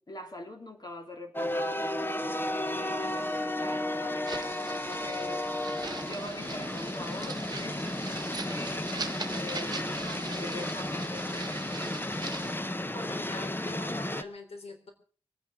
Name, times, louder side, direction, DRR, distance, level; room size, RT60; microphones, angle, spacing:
voice 1, 0.0-5.4 5.8-12.0, left 1 dB, 40° left, 4 dB, 3.1 m, -44 dB
sound 1, 1.3-14.2, left 1 dB, 20° left, 0.9 m, -33 dB
sound 2, 4.2-12.6, right 3 dB, 40° right, 1.1 m, -41 dB
voice 2, 12.9-14.9, left 3 dB, 85° left, 4 dB, 3.6 m, -43 dB
24.5 x 9.8 x 4.8 m, 0.40 s
wide cardioid pair, 95°, 10 cm